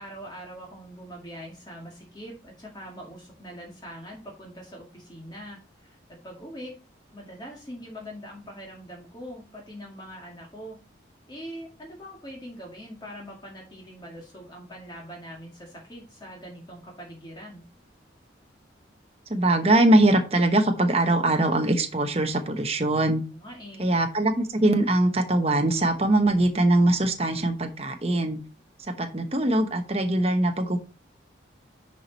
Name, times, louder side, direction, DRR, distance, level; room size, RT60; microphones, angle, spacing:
voice 1, 0.0-6.7 7.1-10.8 11.3-17.6 23.3-23.9, equal, 25° left, -2 dB, 2.1 m, -42 dB
voice 2, 19.3-23.2 23.8-28.4 28.8-30.8, right 1 dB, 30° right, 5 dB, 1.0 m, -22 dB
10.5 x 4.9 x 4.1 m, 0.32 s
head